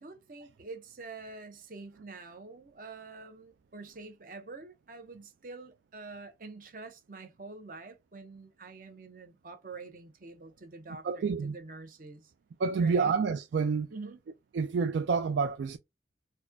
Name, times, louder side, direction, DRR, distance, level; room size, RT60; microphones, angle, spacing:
voice 1, 0.0-12.3 12.8-13.1 13.9-14.2, right 3 dB, 50° right, 0.8 m, -46 dB
voice 2, 11.0-11.6 12.6-13.9 14.5-15.8, right 5 dB, 75° right, 0.3 m, -28 dB
4.1 x 2.2 x 2.3 m
head